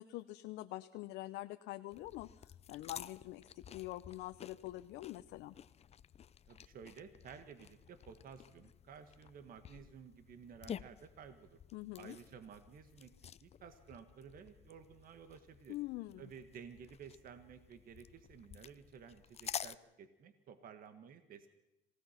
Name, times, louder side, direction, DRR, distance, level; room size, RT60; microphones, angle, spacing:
voice 1, 0.0-5.5 11.7-12.1 15.7-16.3, left 17 dB, 85° left, 8 dB, 0.8 m, -45 dB
sound 1, 1.9-19.8, left 9 dB, 40° left, 0.6 m, -51 dB
voice 2, 6.5-11.6 12.0-13.1 13.4-15.8 16.2-21.5, right 7 dB, 55° right, 9 dB, 1.7 m, -54 dB
26.5 x 17.0 x 5.9 m, 0.94 s
cardioid pair, 110°, 17 cm